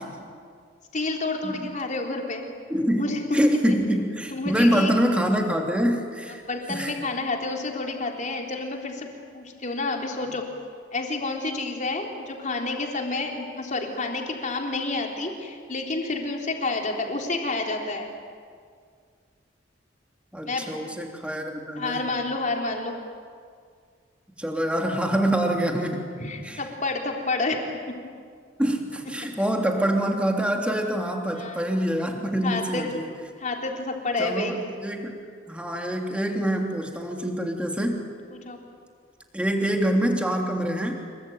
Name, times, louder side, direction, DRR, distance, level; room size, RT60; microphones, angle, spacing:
voice 1, 0.9-2.5 3.0-3.2 4.3-4.9 6.3-9.1 9.3-10.4 10.9-18.1 20.4-20.7 21.8-23.0 26.2-27.6 31.4-31.6 32.4-33.0 33.4-34.6 38.3-38.6, left 3 dB, 40° left, 1 dB, 3.9 m, -29 dB
voice 2, 2.7-6.4 6.7-6.9 20.3-22.1 24.4-26.0 26.4-26.6 28.6-33.1 34.2-38.0 39.3-41.0, equal, 5° right, 2 dB, 3.2 m, -25 dB
26.5 x 23.0 x 9.3 m, 2.1 s
head